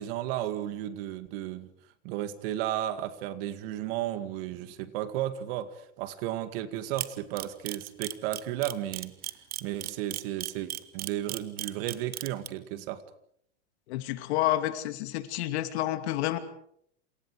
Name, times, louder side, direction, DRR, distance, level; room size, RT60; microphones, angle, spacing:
voice 1, 0.0-1.7 2.0-9.1 9.6-13.0, right 12 dB, 50° right, 11 dB, 2.1 m, -34 dB
Camera, 7.0-12.5, right 14 dB, 25° right, 1.0 m, -35 dB
voice 2, 13.9-16.4, left 14 dB, 60° left, 9 dB, 2.6 m, -29 dB
27.5 x 27.5 x 4.9 m, 0.69 s
supercardioid pair, 155°, 36 cm